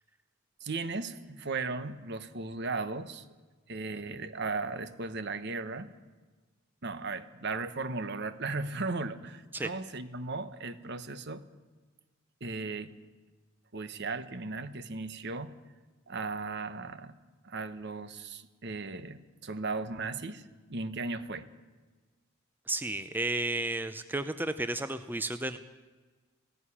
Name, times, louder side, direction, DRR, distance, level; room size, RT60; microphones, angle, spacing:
voice 1, 0.6-3.2 3.7-5.9 6.8-11.4 12.4-12.9 13.7-15.5 16.1-17.1 17.4-21.5, right 3 dB, 55° right, 12 dB, 1.2 m, -36 dB
voice 2, 22.7-25.6, right 2 dB, 10° right, 11 dB, 0.6 m, -32 dB
17.0 x 16.0 x 10.0 m, 1.3 s
head